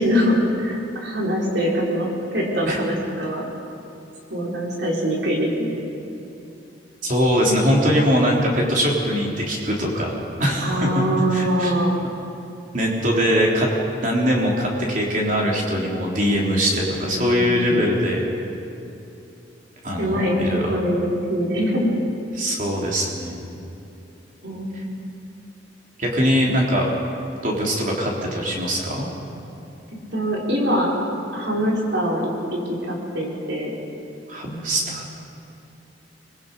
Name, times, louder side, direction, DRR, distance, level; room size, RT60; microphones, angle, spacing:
voice 1, 0.0-3.4 4.3-5.8 10.6-11.9 16.7-17.8 20.0-20.3 20.7-21.9 24.4-24.9 30.1-30.9 31.3-33.7, equal, 70° right, -3 dB, 4.5 m, -23 dB
voice 2, 7.0-11.0 11.3-11.7 12.7-13.7 14.0-18.2 19.8-20.8 22.4-23.7 26.0-26.9 27.4-29.1 34.3-35.1, equal, 45° right, -2 dB, 3.6 m, -22 dB
24.5 x 22.0 x 5.4 m, 2.8 s
head